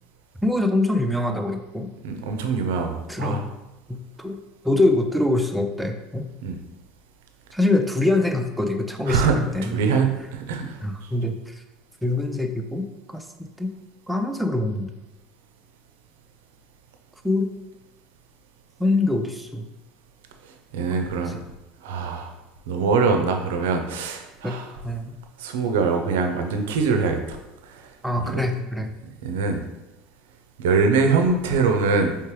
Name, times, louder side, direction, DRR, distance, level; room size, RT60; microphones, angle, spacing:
voice 1, 0.4-1.9 3.1-3.5 3.9-4.4 4.6-6.3 7.5-9.8 10.8-11.5 12.0-13.7 14.1-14.9 17.2-17.5 18.8-19.7 21.3-21.4 24.4-24.6 24.8-25.1 28.0-28.9, left 2 dB, 5° right, 4 dB, 0.5 m, -24 dB
voice 2, 2.0-3.4 6.4-6.6 9.1-9.3 9.6-10.8 20.7-21.4 21.8-22.3 22.7-24.7 25.4-27.4 27.7-27.8 28.3-28.4 29.2-29.6 30.6-32.2, right 4 dB, 75° right, 5 dB, 0.5 m, -23 dB
4.5 x 3.4 x 3.1 m, 0.99 s
hypercardioid pair, 80°, 0 cm